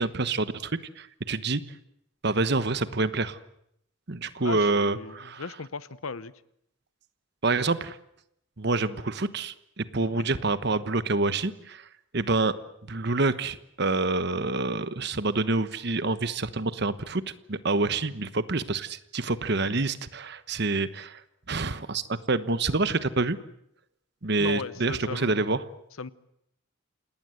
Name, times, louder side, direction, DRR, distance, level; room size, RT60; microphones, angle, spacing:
voice 1, 0.0-1.6 2.2-3.4 4.1-5.4 7.4-8.0 8.6-11.8 12.1-12.5 12.9-17.2 17.5-21.2 21.5-23.4 24.2-25.6, right 3 dB, 55° right, 13 dB, 1.2 m, -27 dB
voice 2, 4.4-6.3 10.1-10.2 24.4-25.4 26.0-26.1, left 4 dB, 85° left, 17 dB, 0.9 m, -37 dB
28.0 x 19.0 x 7.9 m, 0.75 s
head